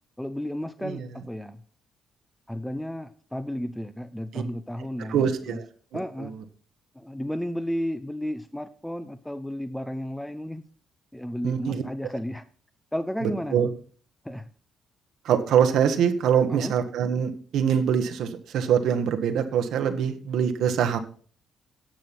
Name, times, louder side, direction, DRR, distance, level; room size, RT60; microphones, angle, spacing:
voice 1, 0.2-1.6 2.5-5.6 5.9-6.4 7.0-10.6 11.1-12.4 12.9-13.6 14.2-14.5 16.5-16.7, equal, 5° left, 12 dB, 0.6 m, -33 dB
voice 2, 5.1-5.6 5.9-6.3 11.4-11.8 13.2-13.7 15.2-21.0, right 8 dB, 80° right, 7 dB, 1.2 m, -24 dB
10.5 x 6.7 x 5.9 m, 0.43 s
cardioid pair, 90°, 0 cm